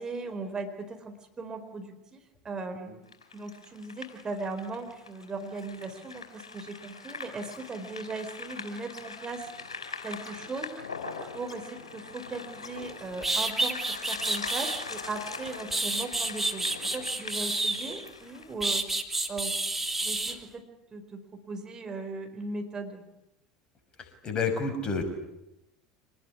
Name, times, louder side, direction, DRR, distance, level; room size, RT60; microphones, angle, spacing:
voice 1, 0.0-2.2 2.4-3.0 3.3-9.5 10.0-10.8 11.3-18.8 19.3-19.5 20.0-20.6 20.9-23.0, right 3 dB, 25° right, 5 dB, 4.5 m, -38 dB
sound 1, 3.1-18.5, left 4 dB, 80° left, 4.9 m, -42 dB
sound 2, 12.8-12.9 13.2-14.8 15.4-18.1 18.6-20.4, right 2 dB, 10° right, 3.0 m, -29 dB
voice 2, 24.2-25.0, left 4 dB, 30° left, 7 dB, 6.1 m, -28 dB
26.5 x 20.5 x 9.9 m, 0.89 s
figure-of-eight pair, 75°, 3 cm